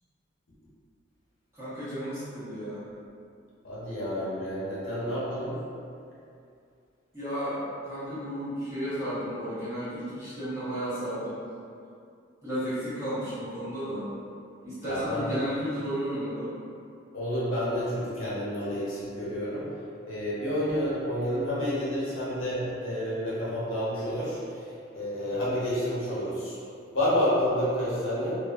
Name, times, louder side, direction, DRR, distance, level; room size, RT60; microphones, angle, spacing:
voice 1, 1.6-2.8 7.1-11.4 12.4-14.1 14.6-16.5 20.5-20.6 25.2-25.4, equal, 15° right, -14 dB, 0.9 m, -33 dB
voice 2, 3.6-5.6 14.8-15.4 17.1-19.7 20.1-24.4 24.9-26.6 26.9-28.3, equal, 90° left, -9 dB, 0.9 m, -29 dB
2.5 x 2.2 x 2.4 m, 2.4 s
head